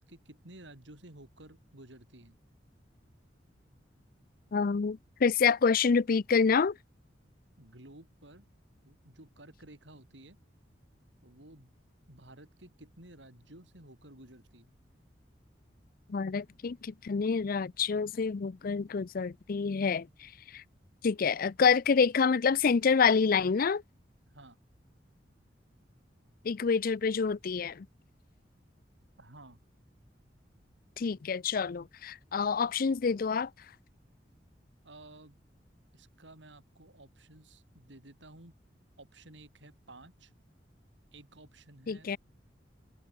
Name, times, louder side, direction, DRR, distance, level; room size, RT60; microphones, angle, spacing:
voice 1, 0.0-2.4 7.6-8.5 8.8-10.4 11.2-11.7 12.1-14.7 24.3-24.6 29.2-29.6 34.8-35.4 35.9-38.5 39.0-40.3 41.1-42.1, right 1 dB, 85° right, 5.6 m, -53 dB
voice 2, 4.5-6.7 16.1-20.3 20.5-20.6 21.0-23.8 26.4-27.9 31.0-33.5 41.9-42.2, left 5 dB, 50° left, 0.5 m, -27 dB
head